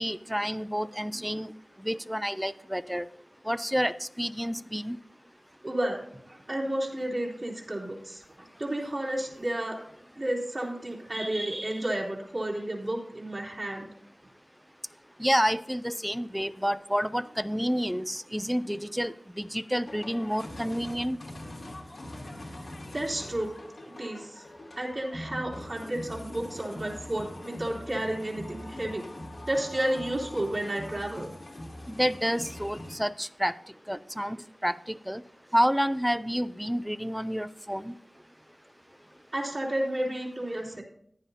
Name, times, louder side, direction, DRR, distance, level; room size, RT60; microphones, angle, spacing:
voice 1, 0.0-1.5 1.8-3.0 3.5-5.0 15.2-21.2 32.0-33.5 33.9-34.4 34.6-35.2 35.5-37.9, equal, 5° right, 15 dB, 0.4 m, -29 dB
voice 2, 5.6-6.0 6.3-8.2 8.6-9.8 10.2-13.9 22.9-23.5 24.0-24.4 24.8-29.0 29.4-31.3 39.3-40.8, right 1 dB, 45° right, -4 dB, 3.1 m, -31 dB
sound 1, 19.8-33.0, left 1 dB, 65° left, 2.7 m, -42 dB
15.0 x 9.8 x 2.8 m, 0.67 s
wide cardioid pair, 50°, 0 cm